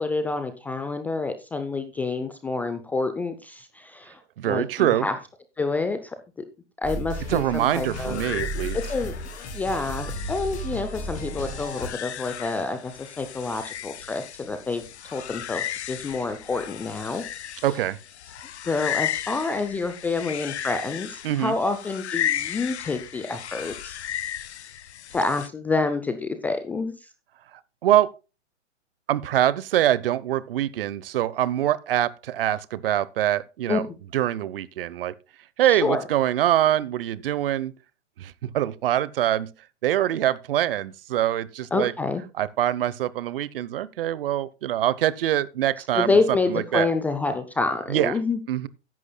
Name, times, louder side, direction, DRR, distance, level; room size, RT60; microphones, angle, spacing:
voice 1, 0.0-5.1 5.6-6.2 6.8-8.2 8.5-9.1 9.5-17.2 17.5-17.6 18.6-24.0 25.1-26.9 33.7-33.8 35.7-36.0 41.7-42.2 45.9-48.4, left 3 dB, 5° left, 0.4 m, -28 dB
voice 2, 4.4-5.1 7.3-8.8 17.6-18.0 21.2-21.5 27.8-28.1 29.1-33.8 34.1-35.1 35.6-37.7 38.2-39.5 39.8-41.9 42.4-46.9 47.9-48.1 48.5-48.7, right 12 dB, 50° right, 0.9 m, -24 dB
sound 1, 6.8-11.9, equal, 20° left, 4.7 m, -34 dB
sound 2, 7.6-25.5, left 10 dB, 70° left, 0.8 m, -35 dB
14.5 x 11.0 x 2.2 m
hypercardioid pair, 125°, 35 cm